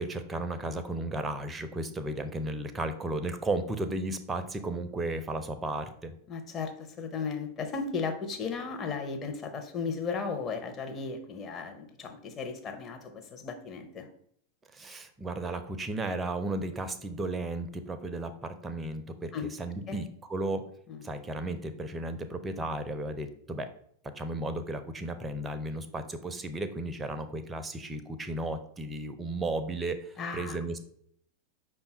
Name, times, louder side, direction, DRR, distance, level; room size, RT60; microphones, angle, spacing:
voice 1, 0.0-6.1 14.7-23.7 24.0-30.8, right 2 dB, 15° right, 9 dB, 0.5 m, -34 dB
voice 2, 6.3-14.1 19.3-19.5 19.9-20.0 20.9-21.0 30.2-30.6, left 5 dB, 25° left, 5 dB, 0.7 m, -35 dB
5.3 x 2.3 x 4.2 m, 0.67 s
figure-of-eight pair, 90°, 0 cm